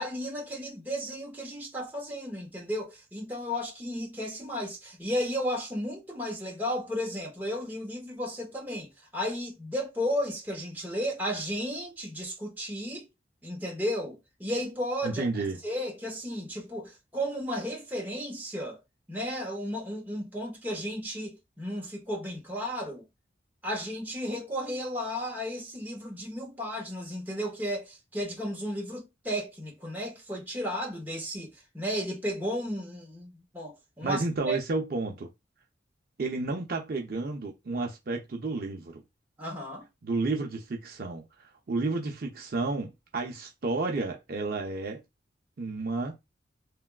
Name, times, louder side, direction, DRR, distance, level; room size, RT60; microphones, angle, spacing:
voice 1, 0.0-13.1 13.4-15.3 15.6-18.8 19.1-23.1 23.6-34.6 39.4-39.8, equal, 10° right, 0.9 m, -34 dB
voice 2, 15.0-15.6 34.0-35.3 36.2-39.0 40.0-45.0 45.6-46.2, right 3 dB, 55° right, 0.5 m, -31 dB
3.4 x 2.2 x 2.3 m
head